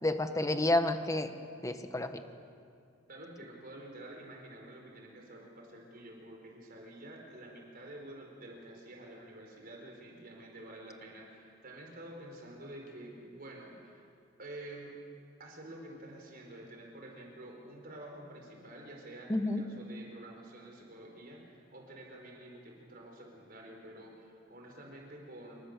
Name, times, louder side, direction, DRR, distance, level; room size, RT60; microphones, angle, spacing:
voice 1, 0.0-1.3 1.6-2.2 19.3-19.6, left 1 dB, 15° left, 8 dB, 1.3 m, -30 dB
voice 2, 3.1-14.0 14.4-14.9 15.4-25.7, right 1 dB, 50° right, 0 dB, 4.5 m, -49 dB
28.0 x 25.0 x 6.7 m, 2.3 s
head